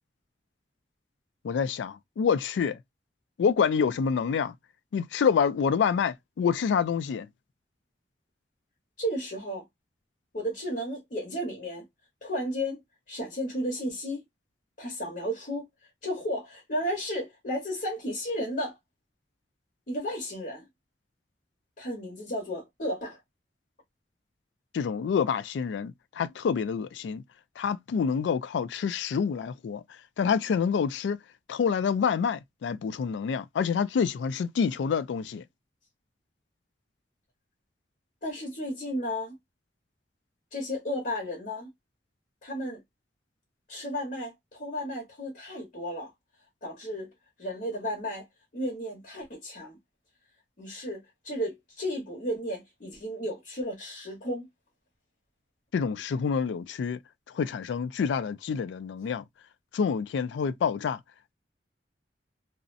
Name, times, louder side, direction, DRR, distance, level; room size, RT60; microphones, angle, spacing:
voice 1, 1.4-2.8 3.4-4.5 4.9-7.3 24.7-27.2 27.6-31.2 31.5-35.4 55.7-57.0 57.3-59.2 59.7-61.0, left 6 dB, 85° left, 0.3 m, -27 dB
voice 2, 9.0-9.6 10.3-11.8 12.2-12.8 13.1-14.2 14.8-15.7 16.0-18.8 19.9-20.7 21.8-23.2 38.2-39.4 40.5-41.7 42.4-42.8 43.7-46.1 46.6-47.1 47.4-48.3 48.5-49.8 50.6-54.5, equal, 50° left, 0.9 m, -33 dB
2.5 x 2.0 x 2.4 m
head